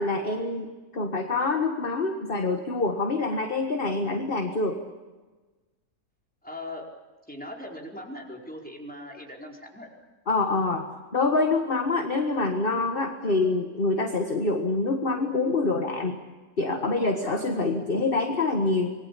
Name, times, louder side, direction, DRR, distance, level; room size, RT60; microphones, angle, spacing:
voice 1, 0.0-4.8 10.3-10.9 11.1-16.2 16.6-18.9, left 3 dB, 35° left, 5 dB, 1.8 m, -26 dB
voice 2, 6.4-6.9 7.3-9.9, left 1 dB, 5° left, -1 dB, 4.8 m, -39 dB
26.5 x 21.5 x 8.5 m, 1.3 s
omnidirectional pair, 1.7 m